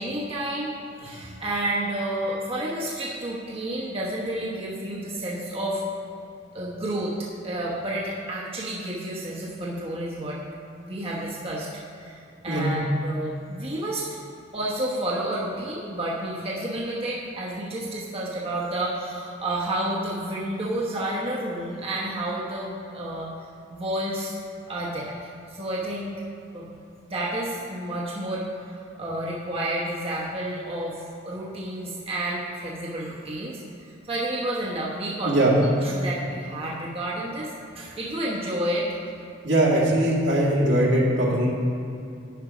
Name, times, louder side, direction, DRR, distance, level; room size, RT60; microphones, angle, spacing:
voice 1, 0.0-5.8 6.5-7.1 7.4-10.4 10.8-11.7 11.9-14.1 14.5-23.3 23.7-24.4 24.7-25.2 25.5-26.1 26.5-26.7 27.0-33.6 34.1-35.5 35.8-37.5 37.7-38.9, right 1 dB, 30° right, -6 dB, 1.1 m, -30 dB
voice 2, 39.4-41.6, right 1 dB, 75° right, -5 dB, 2.2 m, -21 dB
10.5 x 5.5 x 5.0 m, 2.6 s
head